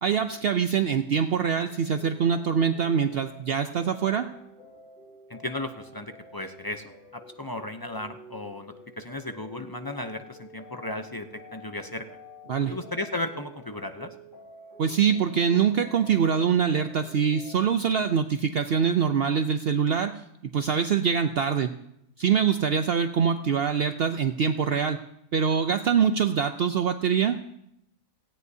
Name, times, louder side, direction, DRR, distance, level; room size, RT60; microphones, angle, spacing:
voice 1, 0.0-4.3 12.5-12.8 14.8-21.7 22.2-25.0 25.3-27.4, right 7 dB, 60° right, 8 dB, 0.7 m, -24 dB
sound 1, 1.5-17.6, equal, 80° left, 4.3 m, -49 dB
voice 2, 5.3-6.8 7.1-12.1 12.7-14.1, left 2 dB, 25° left, 7 dB, 0.5 m, -35 dB
17.5 x 16.5 x 2.7 m, 0.79 s
omnidirectional pair, 1.4 m